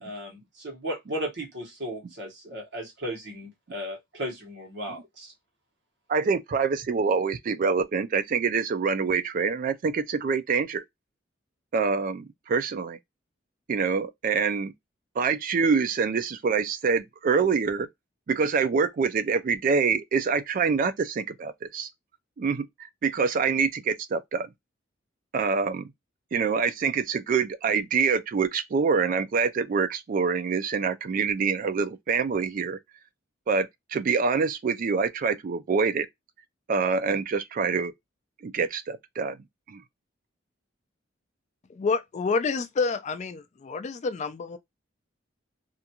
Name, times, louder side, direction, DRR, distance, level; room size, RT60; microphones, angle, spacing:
voice 1, 0.0-5.3, equal, 60° right, 1.1 m, -35 dB
voice 2, 6.1-10.8 11.7-13.0 13.7-14.7 15.2-17.9 18.3-21.9 22.4-24.5 25.3-25.9 26.3-32.8 33.5-36.1 36.7-37.9 38.4-39.4 39.7-39.8, right 5 dB, 45° right, 0.3 m, -25 dB
voice 3, 41.7-44.6, left 4 dB, 35° left, 0.3 m, -28 dB
2.5 x 2.3 x 2.8 m
head